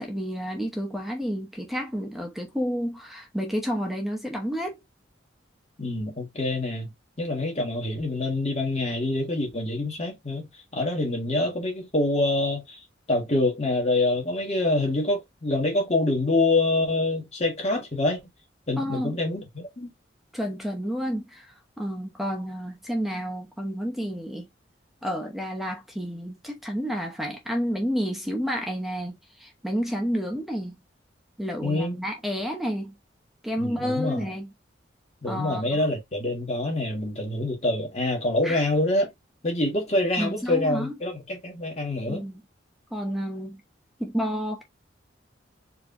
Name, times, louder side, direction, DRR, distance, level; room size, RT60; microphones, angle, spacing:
voice 1, 0.0-4.8 18.8-19.2 20.3-21.5 21.8-24.5 25.0-30.8 31.4-33.0 33.4-34.5 35.2-35.8 38.4-38.6 40.2-40.9 42.1-42.4 42.9-43.6 44.0-44.6, equal, ahead, 0.8 m, -30 dB
voice 2, 5.8-6.9 7.2-10.5 10.7-12.8 13.1-18.2 18.7-19.9 31.6-32.0 33.6-34.3 35.2-39.1 39.4-42.2, left 2 dB, 35° left, 1.7 m, -26 dB
4.5 x 2.9 x 2.6 m
head